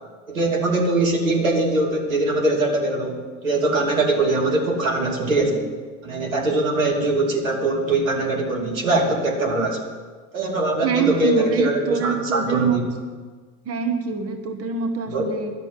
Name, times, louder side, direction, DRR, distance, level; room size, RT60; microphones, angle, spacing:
voice 1, 0.3-5.7 6.0-9.8 10.3-12.8 15.1-15.2, right 2 dB, 85° right, 0 dB, 2.7 m, -22 dB
voice 2, 10.8-12.8 13.6-15.5, right 6 dB, 35° right, 4 dB, 1.5 m, -24 dB
11.5 x 6.8 x 9.7 m, 1.5 s
hypercardioid pair, 80°, 39 cm